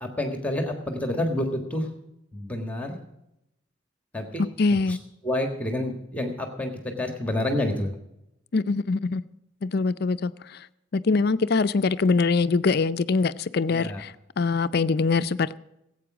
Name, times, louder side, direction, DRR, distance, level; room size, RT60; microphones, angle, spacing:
voice 1, 0.0-1.9 2.3-3.0 4.1-4.4 4.9-5.0 5.2-7.9 13.7-14.0, left 1 dB, 10° left, 5 dB, 1.5 m, -28 dB
voice 2, 4.6-5.0 8.5-9.2 9.6-10.7 10.9-15.6, left 4 dB, 55° left, 13 dB, 0.5 m, -23 dB
17.0 x 8.6 x 6.1 m, 0.85 s
head